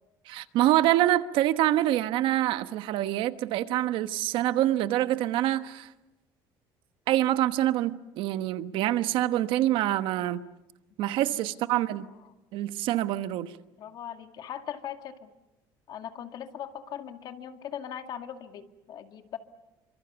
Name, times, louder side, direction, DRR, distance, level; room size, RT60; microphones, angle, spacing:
voice 1, 0.3-5.9 7.1-10.4 11.0-12.1 12.5-13.5, right 14 dB, 70° right, 11 dB, 1.2 m, -26 dB
voice 2, 11.3-11.8 13.8-15.3 15.9-19.4, left 9 dB, 50° left, 7 dB, 2.2 m, -40 dB
29.0 x 25.5 x 7.0 m, 0.99 s
cardioid pair, 130°, 9 cm